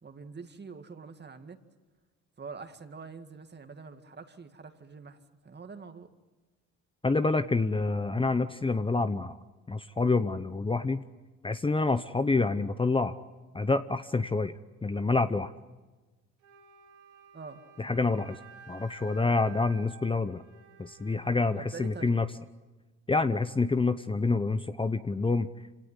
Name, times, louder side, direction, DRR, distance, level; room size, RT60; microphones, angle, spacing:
voice 1, 0.0-1.6 2.4-6.1 17.3-17.6 21.6-22.1, right 5 dB, 35° right, 8 dB, 2.1 m, -45 dB
voice 2, 7.0-9.4 9.7-11.0 11.4-13.1 13.5-14.5 14.8-15.5 17.8-18.4 18.7-20.4 20.8-22.3 23.1-25.5, left 3 dB, 15° left, 11 dB, 0.8 m, -27 dB
Wind instrument woodwind instrument, 16.4-22.3, right 7 dB, 90° right, 2.7 m, -53 dB
26.5 x 18.0 x 9.7 m, 1.2 s
cardioid pair, 90°, 30 cm